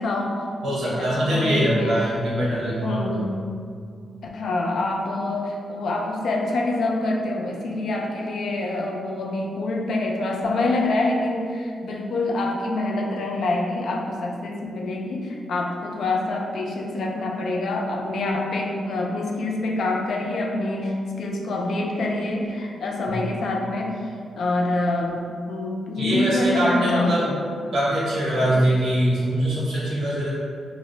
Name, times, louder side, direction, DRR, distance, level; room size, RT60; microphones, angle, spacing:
voice 1, 0.0-2.0 2.8-3.3 4.3-24.1 24.4-27.3 28.4-28.6, left 2 dB, 65° left, 0 dB, 0.4 m, -26 dB
voice 2, 0.6-3.3 23.1-23.2 26.0-27.3 27.7-30.3, equal, 80° right, -7 dB, 0.9 m, -23 dB
2.6 x 2.1 x 3.8 m, 2.2 s
wide cardioid pair, 145°, 0 cm